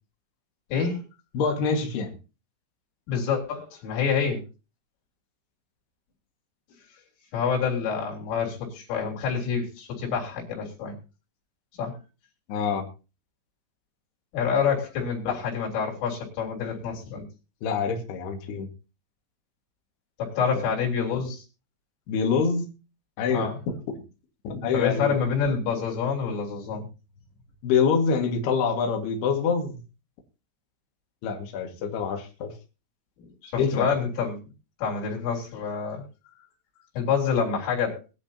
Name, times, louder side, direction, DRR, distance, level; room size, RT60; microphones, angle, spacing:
voice 1, 0.7-1.0 3.1-4.4 7.3-11.0 11.7-12.0 14.3-17.3 20.2-21.5 23.3-23.6 24.7-26.9 33.4-34.4 34.8-36.0 36.9-38.0, left 6 dB, 90° left, -3 dB, 6.3 m, -27 dB
voice 2, 1.3-2.1 12.5-12.9 17.6-18.7 22.1-22.7 23.2-23.5 24.4-25.1 27.6-29.8 31.2-32.5 33.6-33.9, left 5 dB, 60° left, 3 dB, 3.7 m, -25 dB
21.5 x 11.5 x 2.9 m, 0.32 s
omnidirectional pair, 5.6 m